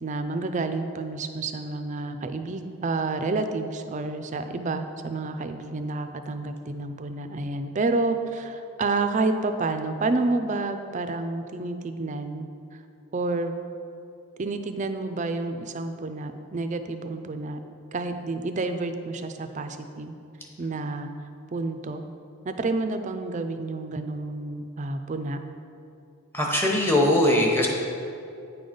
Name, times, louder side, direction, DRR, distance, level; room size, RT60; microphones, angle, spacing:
voice 1, 0.0-12.5 13.1-13.5 14.4-17.6 17.9-20.1 20.6-21.1 21.5-22.0 22.4-25.4, right 3 dB, 35° right, 8 dB, 0.4 m, -29 dB
voice 2, 26.3-27.7, left 1 dB, 10° left, -1 dB, 0.9 m, -21 dB
9.1 x 3.9 x 5.1 m, 2.6 s
head